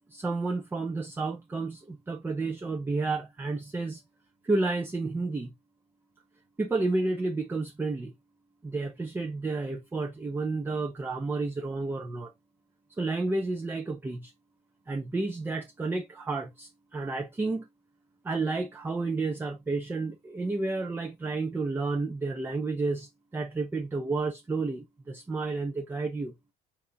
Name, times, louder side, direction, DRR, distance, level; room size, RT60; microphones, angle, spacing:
voice 1, 0.1-4.0 4.4-5.5 6.6-8.1 8.6-12.3 13.0-14.3 14.9-17.7 18.2-26.3, right 3 dB, 10° right, 0.6 m, -31 dB
5.2 x 4.2 x 2.3 m
cardioid pair, 150°, 17 cm